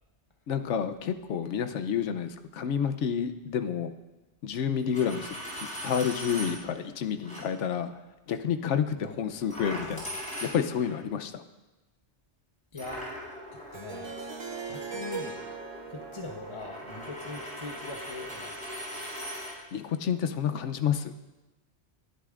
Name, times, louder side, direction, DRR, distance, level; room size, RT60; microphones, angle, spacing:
voice 1, 0.5-3.9 4.4-5.3 5.8-7.9 8.3-10.1 10.4-11.4 19.7-21.1, left 8 dB, 85° left, 9 dB, 1.0 m, -29 dB
Coin (dropping), 4.8-6.5 7.2-7.4 9.5-10.9 12.8-19.5, equal, 5° left, 4.2 m, -40 dB
voice 2, 12.7-13.1 13.5-14.2 14.7-15.4 15.9-18.6, left 3 dB, 30° left, 2 dB, 0.9 m, -41 dB
Harp, 13.7-18.7, right 4 dB, 30° right, 0.5 m, -41 dB
19.0 x 12.0 x 2.5 m, 1.1 s
omnidirectional pair, 1.2 m